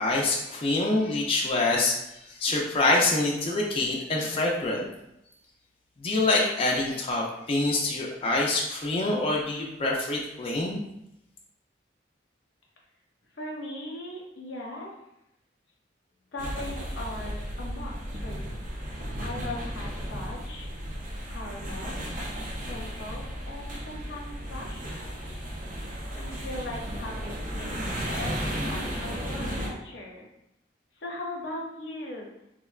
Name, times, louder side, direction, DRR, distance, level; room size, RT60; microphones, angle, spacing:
voice 1, 0.0-4.9 6.0-10.8, left 2 dB, 30° left, -2 dB, 0.4 m, -26 dB
voice 2, 13.3-14.9 16.3-18.5 19.2-20.7 21.3-22.0 22.7-25.1 26.1-27.7 28.0-30.3 31.0-32.3, left 1 dB, 80° left, -2 dB, 0.7 m, -39 dB
sound 1, 16.4-29.7, equal, 50° right, 0.6 m, -34 dB
3.6 x 2.1 x 2.3 m, 0.83 s
head